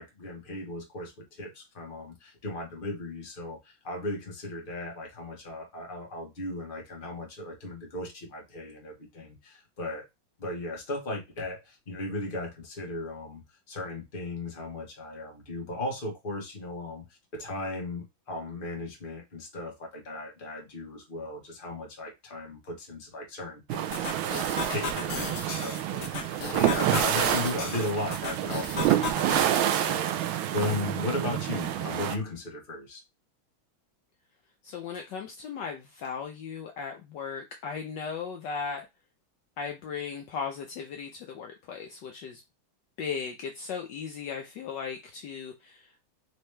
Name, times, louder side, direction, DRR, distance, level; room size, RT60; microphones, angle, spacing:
voice 1, 0.0-10.1 10.4-33.0, left 2 dB, 30° left, 1.2 m, -36 dB
sound 1, 23.7-32.2, right 11 dB, 80° right, 1.4 m, -28 dB
sound 2, 23.9-29.7, left 5 dB, 50° left, 1.0 m, -36 dB
voice 2, 34.6-38.9 39.6-42.4 43.0-46.0, left 6 dB, 70° left, 1.2 m, -37 dB
4.4 x 2.9 x 3.2 m
omnidirectional pair, 2.2 m